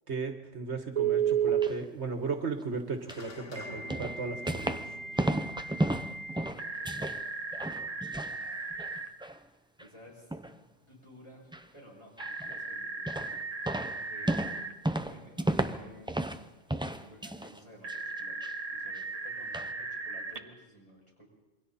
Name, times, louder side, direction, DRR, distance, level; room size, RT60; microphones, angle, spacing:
voice 1, 0.1-4.8, right 4 dB, 70° right, 5 dB, 1.6 m, -36 dB
Telephone, 0.9-1.7 3.5-9.1 12.2-14.7 17.8-20.4, right 7 dB, 35° right, 1.2 m, -35 dB
sound 1, 1.3-1.7 3.1-3.3 3.9-4.9 5.2-7.2 7.5-8.4 8.7-9.4 9.8-9.9 10.3-10.6 11.5-11.7 12.2-12.6 13.1-13.4 13.7-16.4 16.7-17.6 17.9-18.5 19.0-19.1 19.5-19.7, right 1 dB, 5° right, 0.5 m, -33 dB
sound 2, 3.1-7.7, left 3 dB, 90° left, 1.9 m, -49 dB
voice 2, 6.8-7.2 8.2-8.8 9.8-10.3 10.8-13.4 13.8-14.4 15.0-16.1 16.9-18.3 18.7-21.3, equal, 25° left, -4 dB, 6.7 m, -54 dB
27.0 x 23.0 x 4.2 m, 1.1 s
omnidirectional pair, 1.2 m